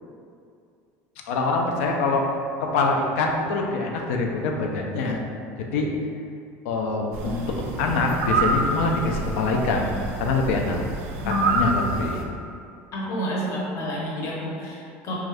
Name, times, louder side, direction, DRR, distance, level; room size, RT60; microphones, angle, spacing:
voice 1, 1.3-2.3 2.6-5.2 5.6-5.9 6.6-9.9 10.2-10.8 11.3-12.2, left 3 dB, 90° left, 1 dB, 0.4 m, -24 dB
sound 1, 7.1-12.2, right 3 dB, 90° right, 0.4 m, -27 dB
voice 2, 12.9-15.1, equal, 45° left, -4 dB, 0.7 m, -29 dB
2.5 x 2.3 x 3.3 m, 2.4 s
supercardioid pair, 125°, 7 cm